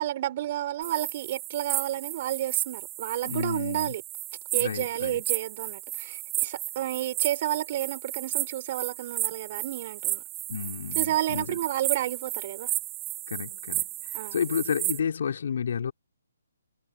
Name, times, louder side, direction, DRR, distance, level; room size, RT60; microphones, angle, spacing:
voice 1, 0.0-4.0 4.5-10.2 11.0-12.7 14.1-14.4, right 13 dB, 40° right, 4.2 m, -31 dB
sound 1, 0.8-15.0, right 17 dB, 20° right, 2.8 m, -33 dB
voice 2, 3.2-3.9 4.5-5.2 10.5-11.6 13.3-15.9, left 7 dB, 55° left, 3.3 m, -31 dB
figure-of-eight pair, 140°, 0 cm